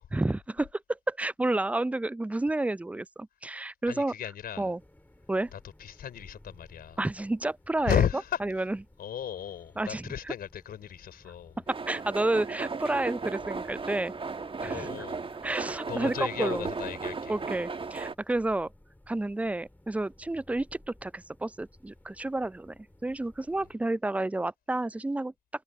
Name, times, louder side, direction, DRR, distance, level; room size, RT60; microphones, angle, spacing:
voice 1, 0.1-4.1 4.6-4.8 5.3-5.5 7.0-8.0 8.4-8.6 9.8-10.0 11.7-14.1 14.6-14.9 15.4-16.7 17.3-18.7 19.1-25.3, right 2 dB, 10° right, 0.5 m, -30 dB
voice 2, 3.9-4.7 5.5-7.0 7.9-8.7 9.0-11.6 14.6-15.3 15.5-15.6 15.9-17.4 23.6-23.7, left 9 dB, 60° left, 4.0 m, -34 dB
sound 1, 4.8-23.7, left 1 dB, 10° left, 4.5 m, -58 dB
sound 2, 11.7-18.1, right 4 dB, 30° right, 1.5 m, -36 dB
hypercardioid pair, 45°, 18 cm